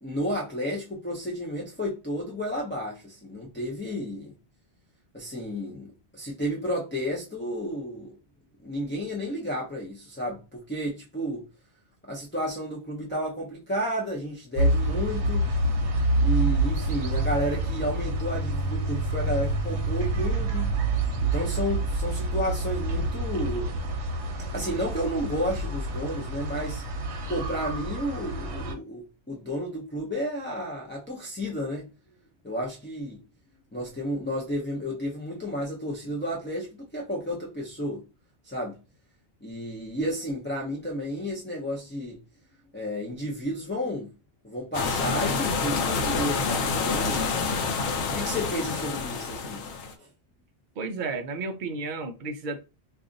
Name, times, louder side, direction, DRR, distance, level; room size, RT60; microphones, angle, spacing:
voice 1, 0.0-4.3 5.1-8.1 8.6-11.5 12.1-15.5 16.2-20.7 21.2-23.7 24.5-26.8 27.3-31.9 32.4-33.2 33.7-38.0 38.4-38.8 39.4-42.2 42.7-44.1 44.4-47.2 48.1-50.1, equal, 15° left, 0.5 m, -32 dB
sound 1, 14.6-28.7, right 2 dB, 80° right, 1.0 m, -27 dB
sound 2, 44.7-49.9, left 4 dB, 85° left, 0.9 m, -28 dB
voice 2, 50.8-52.6, right 3 dB, 55° right, 0.6 m, -32 dB
2.5 x 2.4 x 3.8 m
omnidirectional pair, 1.1 m